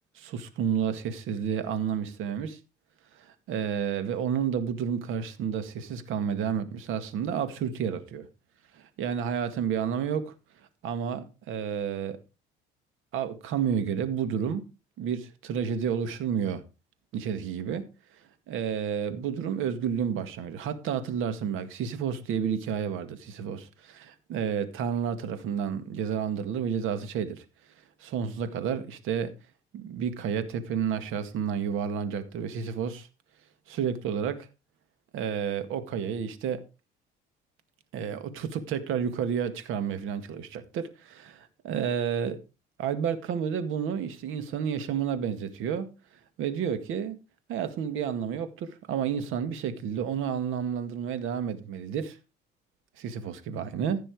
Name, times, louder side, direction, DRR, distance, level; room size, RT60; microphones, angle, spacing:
voice 1, 0.2-2.6 3.2-8.3 8.7-10.3 10.8-12.2 13.1-14.6 15.0-16.6 17.1-17.8 18.5-27.4 28.0-29.3 29.7-33.1 33.7-34.4 35.1-36.6 37.9-42.4 42.8-45.9 46.4-47.2 47.5-52.2 53.0-54.0, right 7 dB, 75° right, 2.0 m, -30 dB
15.5 x 6.2 x 4.9 m
cardioid pair, 90°, 21 cm